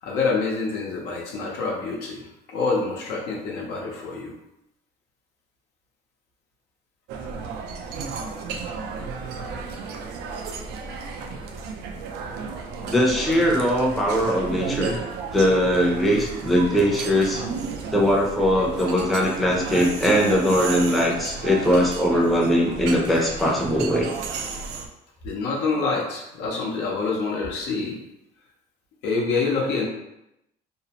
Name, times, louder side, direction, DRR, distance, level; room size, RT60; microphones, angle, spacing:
voice 1, 0.0-4.3 25.2-28.0 29.0-29.9, left 4 dB, 85° left, -2 dB, 0.7 m, -26 dB
sound 1, 7.1-24.9, right 5 dB, 80° right, 0.4 m, -33 dB
voice 2, 12.8-15.0 15.3-17.4 17.9-24.1, equal, ahead, -3 dB, 0.5 m, -21 dB
2.6 x 2.0 x 2.8 m, 0.85 s
cardioid pair, 110°, 17 cm